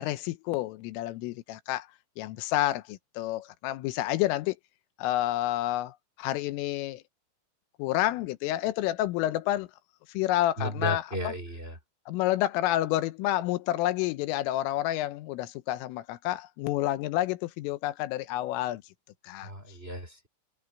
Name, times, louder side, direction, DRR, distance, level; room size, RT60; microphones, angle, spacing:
voice 1, 0.0-1.9 2.2-4.6 5.0-7.0 7.8-9.7 10.2-11.3 12.1-18.8 19.2-19.5, left 15 dB, 90° left, 3.6 m, -29 dB
voice 2, 10.6-11.8 19.4-20.3, equal, 10° right, 4.1 m, -34 dB
omnidirectional pair, 5.7 m